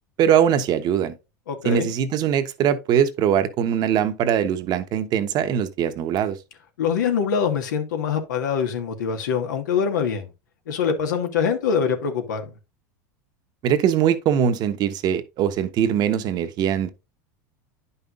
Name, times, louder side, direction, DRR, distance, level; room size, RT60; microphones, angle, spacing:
voice 1, 0.2-1.1 1.6-6.4 13.6-16.9, right 9 dB, 45° right, 1.0 m, -21 dB
voice 2, 1.5-1.9 6.8-10.3 10.7-12.5, left 6 dB, 85° left, 1.7 m, -24 dB
9.8 x 5.6 x 2.5 m
hypercardioid pair, 105°, 10 cm